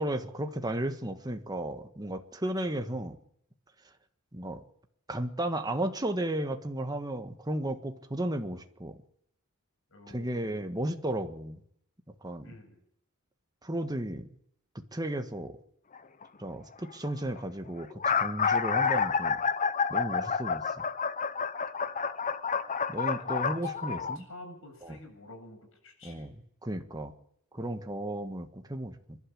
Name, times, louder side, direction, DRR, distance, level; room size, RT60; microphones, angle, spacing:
voice 1, 0.0-3.2 4.3-4.6 5.1-9.0 10.1-11.6 12.2-12.5 13.6-14.3 14.9-15.6 16.4-17.9 18.2-19.4 19.9-20.6 22.9-24.2 24.8-25.0 26.0-26.3 26.6-27.1 27.5-29.2, right 1 dB, 20° right, 6 dB, 1.7 m, -34 dB
voice 2, 9.9-10.6 12.4-12.8 22.9-26.3, left 2 dB, 65° left, 4 dB, 7.8 m, -50 dB
sound 1, 15.9-16.2 17.1-17.2 17.4-17.5 17.8-24.2, left 6 dB, 35° left, 0.9 m, -29 dB
28.0 x 12.0 x 8.9 m, 0.71 s
head